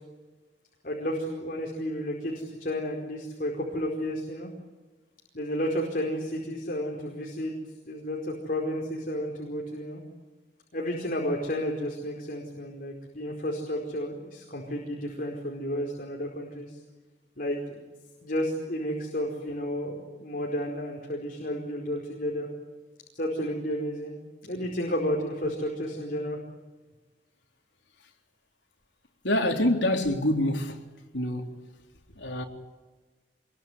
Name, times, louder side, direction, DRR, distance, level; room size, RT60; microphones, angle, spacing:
voice 1, 0.8-4.5 5.3-7.5 7.9-10.0 10.7-16.8 17.4-17.8 18.2-22.5 23.1-24.1 24.4-26.4, equal, 55° left, 4.8 m, -32 dB
voice 2, 29.2-30.8 31.1-31.5 32.2-32.4, left 1 dB, 80° left, 3.7 m, -25 dB
26.0 x 22.5 x 9.7 m
head